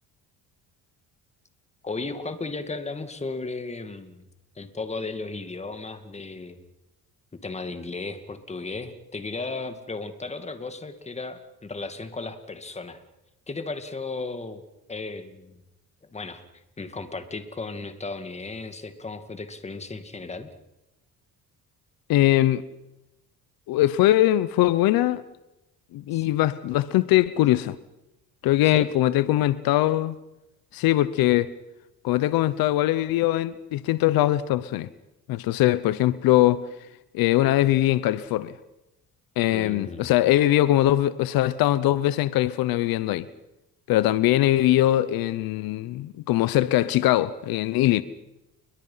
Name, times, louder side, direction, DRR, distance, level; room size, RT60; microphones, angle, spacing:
voice 1, 1.8-4.2 4.6-6.6 7.4-13.0 13.5-14.6 14.9-15.6 16.1-16.4 16.8-20.5 26.1-26.2 28.6-28.9 39.5-40.1, left 3 dB, 20° left, 2.4 m, -35 dB
voice 2, 22.1-22.6 23.7-25.2 25.9-27.8 28.4-30.2 30.7-31.5 32.0-34.9 35.3-36.6 37.1-38.5 39.4-43.3 43.9-48.0, left 14 dB, 80° left, 0.9 m, -21 dB
29.0 x 22.5 x 5.8 m
cardioid pair, 125°, 35 cm